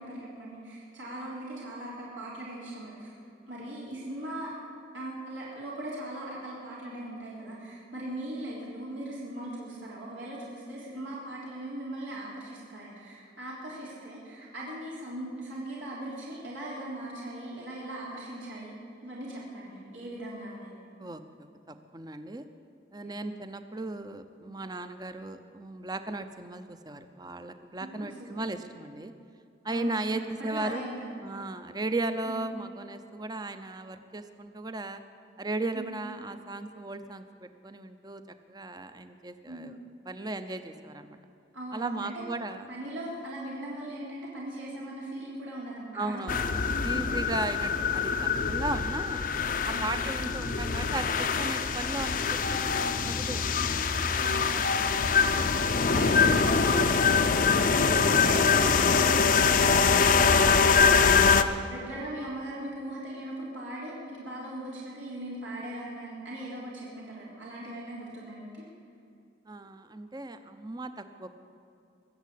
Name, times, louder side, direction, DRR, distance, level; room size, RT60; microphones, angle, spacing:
voice 1, 0.0-3.2 3.5-4.5 4.9-18.7 19.0-20.7 23.0-23.2 27.9-28.3 29.7-30.2 30.5-31.0 32.3-32.4 35.7-35.9 39.5-39.7 41.5-42.1 42.7-47.2 49.7-49.9 54.2-57.9 58.2-68.6, right 1 dB, 85° right, -6 dB, 3.7 m, -39 dB
voice 2, 21.0-22.5 22.9-29.1 29.6-30.8 31.2-35.0 35.4-38.2 38.5-39.8 40.1-41.2 41.7-42.7 45.9-46.4 46.8-49.2 49.6-53.7 55.3-55.8 69.5-71.3, right 2 dB, 20° right, 10 dB, 0.7 m, -36 dB
sound 1, 46.3-61.4, left 5 dB, 45° left, 0.6 m, -24 dB
22.5 x 7.5 x 8.4 m, 2.4 s
head